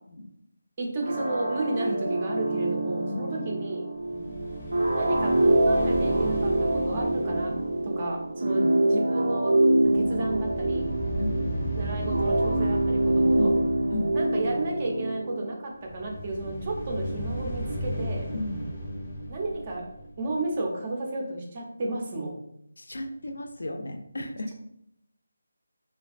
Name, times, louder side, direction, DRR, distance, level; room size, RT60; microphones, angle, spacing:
voice 1, 0.8-3.9 4.9-9.6 9.9-10.9 11.8-13.5 14.1-18.3 19.3-19.9 20.2-22.3, right 2 dB, 25° right, 0 dB, 0.4 m, -32 dB
sound 1, 1.0-15.6, right 1 dB, 80° right, 0.5 m, -25 dB
sound 2, 4.0-9.3 9.6-14.8 15.8-20.7, right 1 dB, 25° left, 0.6 m, -35 dB
voice 2, 18.3-18.7 22.8-24.5, left 1 dB, 80° left, 6 dB, 0.4 m, -33 dB
2.5 x 2.2 x 2.3 m, 0.78 s
figure-of-eight pair, 170°, 0 cm